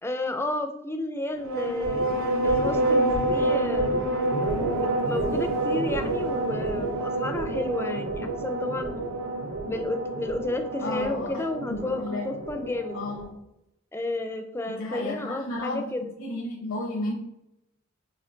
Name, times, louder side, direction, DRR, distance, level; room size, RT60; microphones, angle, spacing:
voice 1, 0.0-4.2 4.7-8.9 9.7-13.0 13.9-16.1, left 2 dB, 10° left, 7 dB, 0.4 m, -32 dB
sound 1, 1.4-13.3, right 2 dB, 70° right, 0.7 m, -28 dB
voice 2, 10.8-12.3 12.9-13.4 14.7-17.2, left 2 dB, 70° left, 0 dB, 0.7 m, -33 dB
4.3 x 3.1 x 3.8 m, 0.85 s
head